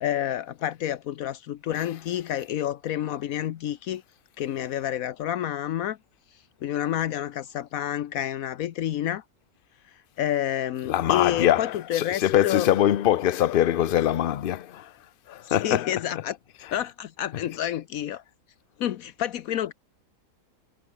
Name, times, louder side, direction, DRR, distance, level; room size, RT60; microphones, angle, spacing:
voice 1, 0.0-4.0 4.4-6.0 6.3-9.2 9.9-12.7 15.4-16.4 16.7-18.2 18.8-19.7, left 11 dB, 80° left, 1.2 m, -29 dB
voice 2, 10.9-14.9 15.3-15.9, left 12 dB, 55° left, 0.7 m, -23 dB
omnidirectional pair, 1.5 m